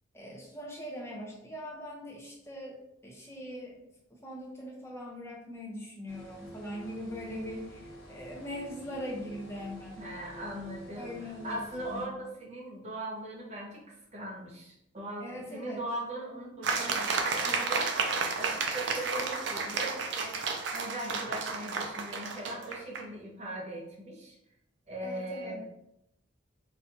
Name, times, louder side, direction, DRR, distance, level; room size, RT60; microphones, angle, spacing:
voice 1, 0.1-3.8 4.2-10.1 11.0-11.6 11.9-12.1 15.2-15.8 25.0-25.6, equal, 15° left, -3 dB, 0.7 m, -41 dB
sound 1, 6.1-12.1, equal, 75° left, 1.1 m, -49 dB
voice 2, 10.0-24.4 24.9-25.8, right 1 dB, 30° right, -3 dB, 0.8 m, -40 dB
sound 2, 16.6-23.0, right 4 dB, 60° right, 0.4 m, -32 dB
4.2 x 2.4 x 2.6 m, 0.82 s
head